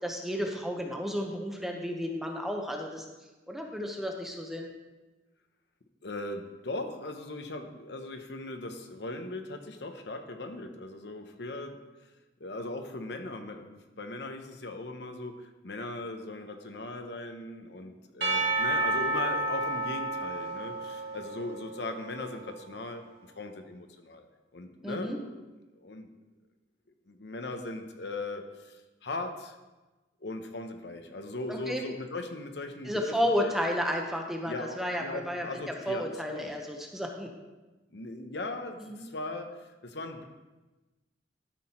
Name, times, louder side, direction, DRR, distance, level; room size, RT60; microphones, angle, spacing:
voice 1, 0.0-3.1 3.5-4.7 24.8-25.2 31.5-31.8 32.9-35.5 35.9-37.3 38.8-39.1, equal, ahead, 1 dB, 1.0 m, -32 dB
voice 2, 6.0-12.1 12.4-24.3 24.5-25.4 25.7-26.1 27.1-29.6 30.2-33.1 33.4-33.6 34.5-36.5 37.9-40.2, left 2 dB, 70° left, 5 dB, 0.9 m, -39 dB
Percussion / Church bell, 18.2-22.4, right 2 dB, 70° right, 2.0 m, -31 dB
12.5 x 6.2 x 4.4 m, 1.1 s
head